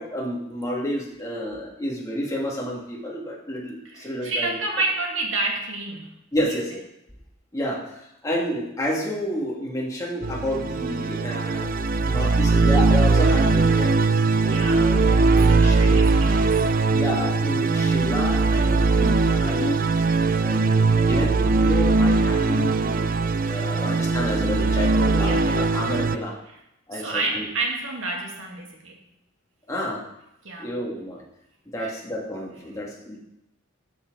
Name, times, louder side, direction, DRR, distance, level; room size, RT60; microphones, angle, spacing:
voice 1, 0.0-4.6 6.3-6.8 7.5-11.7 12.0-14.0 14.4-15.7 16.9-19.8 20.4-26.3 26.9-27.5 29.7-30.0 30.6-31.2 31.7-33.2, equal, 15° left, -4 dB, 2.4 m, -30 dB
voice 2, 3.8-6.1 6.4-6.6 14.4-16.6 25.2-25.5 26.5-26.6 26.9-29.0 30.4-30.7 31.8-31.9, right 2 dB, 65° right, 0 dB, 2.2 m, -30 dB
sound 1, 10.2-26.2, right 3 dB, 40° right, 0.5 m, -20 dB
13.0 x 7.7 x 4.0 m, 0.84 s
head